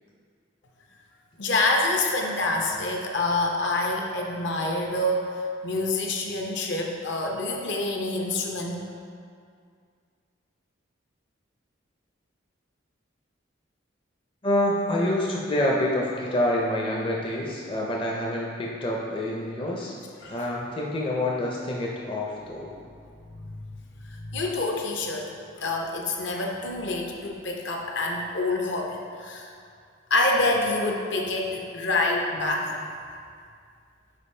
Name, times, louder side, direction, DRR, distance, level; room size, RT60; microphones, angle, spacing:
voice 1, 1.4-8.9 20.2-20.4 23.4-23.5 24.0-25.3 25.6-29.5 30.1-32.8, left 2 dB, 65° left, 1 dB, 0.7 m, -27 dB
voice 2, 14.4-19.9 20.3-22.7, left 1 dB, 25° left, -3 dB, 0.5 m, -27 dB
5.1 x 4.7 x 4.3 m, 2.2 s
head